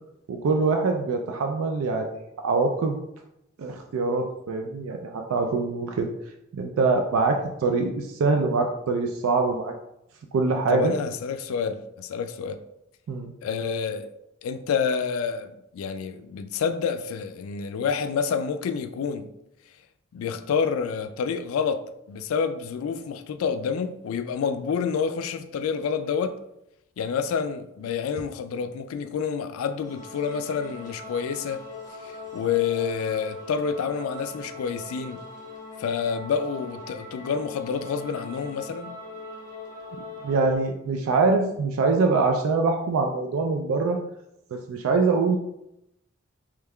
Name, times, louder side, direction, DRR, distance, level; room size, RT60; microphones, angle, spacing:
voice 1, 0.3-3.0 3.6-6.1 6.5-9.7 10.3-10.9 13.1-13.3 40.2-44.0 44.5-45.4, right 3 dB, 90° right, 0.3 m, -24 dB
voice 2, 10.7-12.6 13.4-14.1 14.4-19.3 20.1-26.4 27.0-31.6 32.0-35.2 35.8-38.9, left 6 dB, 85° left, 0.3 m, -28 dB
sound 1, 29.8-40.6, left 2 dB, 20° left, 0.9 m, -41 dB
3.5 x 3.1 x 2.2 m
head